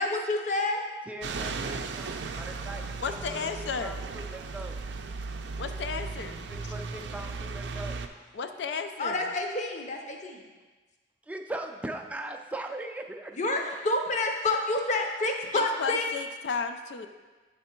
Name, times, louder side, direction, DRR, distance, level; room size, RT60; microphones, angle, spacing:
voice 1, 0.0-0.9 9.0-10.4 13.4-16.0, left 2 dB, 40° left, 3 dB, 0.7 m, -28 dB
voice 2, 1.1-4.8 6.5-8.4 11.2-13.3, right 2 dB, 10° right, 4 dB, 0.4 m, -40 dB
sound 1, 1.2-8.1, right 4 dB, 85° right, 0.4 m, -36 dB
voice 3, 3.0-4.0 5.6-6.5 8.3-9.3 15.5-17.1, left 5 dB, 80° left, 8 dB, 0.4 m, -33 dB
8.5 x 3.4 x 4.4 m, 1.3 s
head